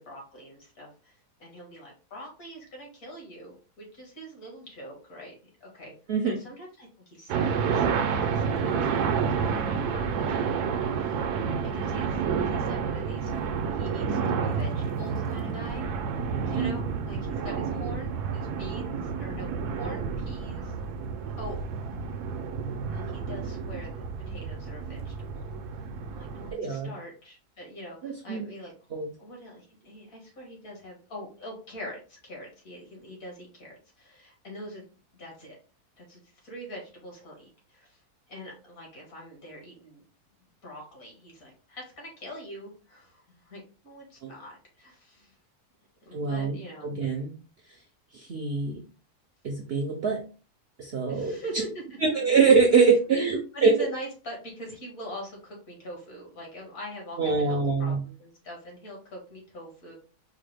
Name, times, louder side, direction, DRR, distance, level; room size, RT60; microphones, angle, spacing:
voice 1, 0.0-5.3 5.6-5.9 6.2-7.9 8.1-11.2 11.5-13.3 13.7-19.5 19.8-20.7 21.4-21.6 22.8-25.5 26.1-28.7 29.2-34.8 35.2-35.6 36.0-38.0 38.3-40.0 40.6-45.3 46.0-46.9 51.1-51.8 53.3-59.9, equal, 60° left, -1 dB, 1.9 m, -43 dB
sound 1, 7.3-26.5, right 6 dB, 80° right, 1.1 m, -30 dB
voice 2, 26.5-26.9 28.0-28.5 28.9-29.1 44.2-44.3 46.1-47.3 48.1-48.8 49.4-50.2 50.8-51.4 52.0-53.7 57.2-58.0, right 5 dB, 60° right, 1 dB, 0.6 m, -24 dB
4.6 x 2.1 x 3.3 m, 0.36 s
omnidirectional pair, 1.7 m